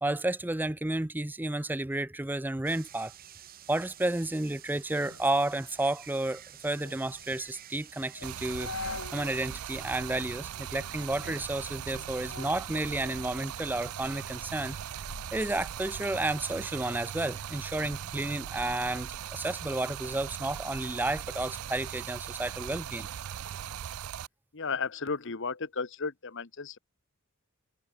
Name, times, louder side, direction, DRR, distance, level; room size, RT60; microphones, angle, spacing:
voice 1, 0.0-3.1 3.7-14.8 15.3-23.1, right 2 dB, 10° right, 0.5 m, -32 dB
sound 1, 2.6-10.0, right 11 dB, 45° right, 1.3 m, -50 dB
sound 2, 5.0-9.5 9.8-9.9 10.5-10.9 11.3-13.3 13.7-16.2, left 3 dB, 75° left, 3.6 m, -45 dB
Stream, 8.2-24.3, right 10 dB, 85° right, 0.4 m, -39 dB
voice 2, 24.5-26.8, left 4 dB, 55° left, 1.1 m, -34 dB
head